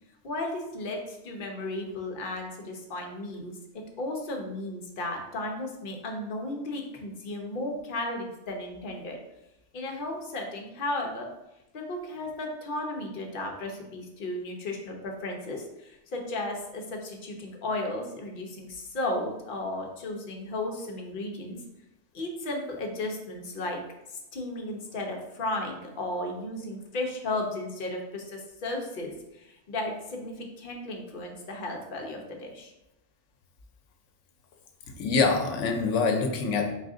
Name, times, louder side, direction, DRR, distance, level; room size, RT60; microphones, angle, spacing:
voice 1, 0.2-3.5 4.0-9.2 9.7-11.3 11.7-21.6 22.1-23.8 24.3-32.7, left 2 dB, 50° left, 1 dB, 0.8 m, -34 dB
voice 2, 34.9-36.7, left 4 dB, 90° left, 4 dB, 0.9 m, -25 dB
4.1 x 2.5 x 3.7 m, 0.93 s
omnidirectional pair, 1.2 m